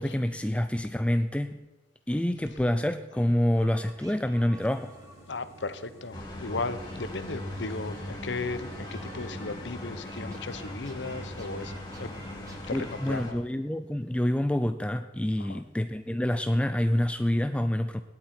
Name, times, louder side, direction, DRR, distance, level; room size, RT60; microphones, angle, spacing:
voice 1, 0.0-1.6 2.1-4.9 12.7-18.0, left 1 dB, 5° left, 9 dB, 0.4 m, -27 dB
sound 1, 3.5-13.2, right 1 dB, 20° right, 1.9 m, -52 dB
sound 2, 4.6-12.8, equal, 40° left, 3.9 m, -54 dB
voice 2, 5.3-13.4 15.4-15.6, left 3 dB, 75° left, 13 dB, 0.9 m, -36 dB
sound 3, 6.1-13.3, left 1 dB, 25° left, 2.9 m, -39 dB
18.0 x 11.5 x 4.4 m, 1.2 s
head